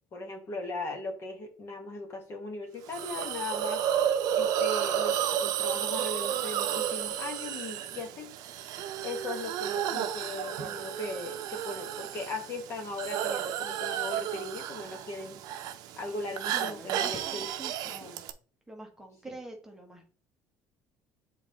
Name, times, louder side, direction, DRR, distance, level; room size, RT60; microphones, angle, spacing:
voice 1, 0.1-3.8 4.3-8.3 9.0-15.4 16.0-17.5 17.8-18.1, left 2 dB, 35° left, 3 dB, 1.5 m, -38 dB
Hiss, 2.9-18.3, right 10 dB, 65° right, 0.6 m, -32 dB
voice 2, 16.5-18.2 18.7-20.1, right 2 dB, 5° right, 0 dB, 1.1 m, -46 dB
7.3 x 3.7 x 3.7 m, 0.41 s
cardioid pair, 145°, 7 cm